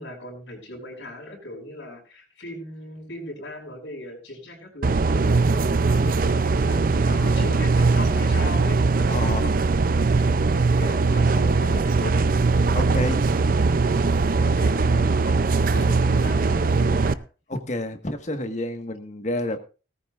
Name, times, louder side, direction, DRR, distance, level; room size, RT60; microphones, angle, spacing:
voice 1, 0.0-6.8 7.2-9.3 10.0-12.2 13.6-17.2, left 1 dB, 85° left, 1 dB, 5.9 m, -39 dB
sound 1, 4.8-17.1, right 3 dB, 50° right, 0.5 m, -20 dB
voice 2, 7.0-7.4 9.1-9.6 10.1-10.2 12.7-13.3 15.7-15.9 17.5-19.6, left 1 dB, 40° left, 6 dB, 1.6 m, -30 dB
17.5 x 14.0 x 2.5 m, 0.34 s
head